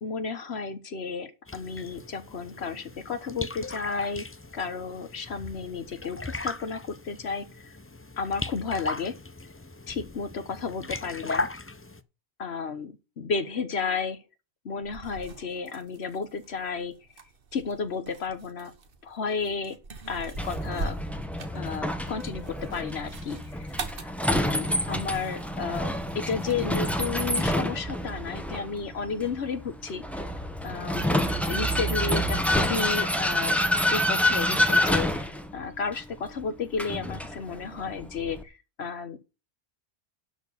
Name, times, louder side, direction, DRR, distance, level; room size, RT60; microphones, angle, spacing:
voice 1, 0.0-4.3 4.5-7.7 8.2-9.1 9.9-11.5 12.4-14.2 14.6-17.0 17.5-18.7 19.0-19.8 20.1-21.0 21.5-30.1 30.6-33.6 33.9-39.2, left 5 dB, 70° left, 1.3 m, -33 dB
sound 1, 1.5-12.0, left 2 dB, 20° left, 0.4 m, -38 dB
sound 2, 14.8-27.4, right 3 dB, 55° right, 1.4 m, -43 dB
Vehicle, 20.4-38.4, equal, ahead, 1.1 m, -28 dB
11.5 x 4.4 x 7.1 m
omnidirectional pair, 1.1 m